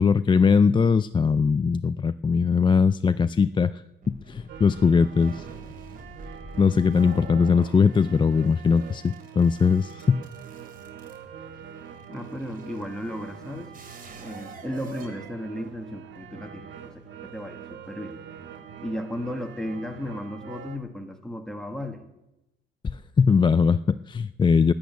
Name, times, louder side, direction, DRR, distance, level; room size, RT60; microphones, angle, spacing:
voice 1, 0.0-3.8 4.1-5.5 6.6-10.3 22.8-24.7, left 5 dB, 25° left, 13 dB, 0.4 m, -21 dB
sound 1, 4.0-16.0, right 3 dB, 45° right, 2.7 m, -47 dB
sound 2, 4.5-20.8, right 7 dB, 70° right, 1.5 m, -44 dB
voice 2, 12.1-13.7 14.2-18.2 18.8-22.0, left 1 dB, 5° left, 4 dB, 1.9 m, -35 dB
10.5 x 10.0 x 9.3 m, 0.94 s
cardioid pair, 90°, 20 cm